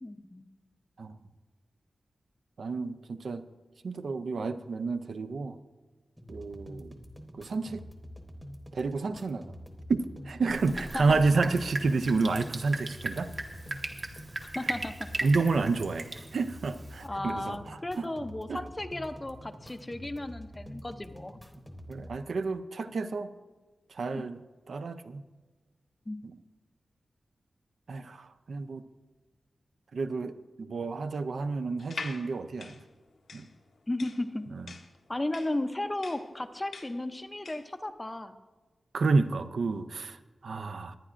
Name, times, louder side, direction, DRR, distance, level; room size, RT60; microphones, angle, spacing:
voice 1, 0.0-0.4 10.9-11.2 14.5-15.1 17.0-21.4 24.1-24.3 26.1-26.2 33.9-34.5 35.1-38.4, left 1 dB, 15° left, 9 dB, 0.5 m, -35 dB
voice 2, 2.6-3.4 3.8-5.6 6.3-6.9 7.3-7.8 8.7-9.5 9.9-13.3 15.2-18.0 18.5-18.6 21.9-23.3 23.9-24.4 24.7-25.2 26.2-26.3 27.9-28.8 29.9-32.8 33.3-33.5 34.5-34.7 38.9-41.0, right 3 dB, 65° right, 10 dB, 0.5 m, -30 dB
sound 1, 6.2-22.2, equal, 5° right, 0.9 m, -47 dB
Drip, 10.5-17.1, right 2 dB, 40° right, 1.0 m, -38 dB
sound 2, 31.8-37.8, left 4 dB, 70° left, 0.8 m, -44 dB
21.5 x 9.7 x 2.5 m, 1.3 s
wide cardioid pair, 150°, 0 cm